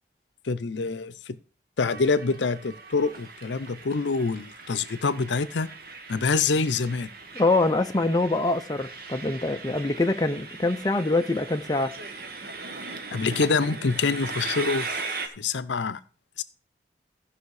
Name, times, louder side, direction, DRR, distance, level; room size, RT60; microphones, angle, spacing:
voice 1, 0.4-1.4 1.8-5.7 6.1-7.1 13.1-14.9 15.4-16.0 16.4-16.5, left 4 dB, 80° left, 0.6 m, -26 dB
Train, 1.9-15.3, right 4 dB, 50° right, 1.2 m, -39 dB
voice 2, 7.3-11.9, left 2 dB, 20° left, 0.5 m, -24 dB
14.5 x 5.7 x 4.8 m
head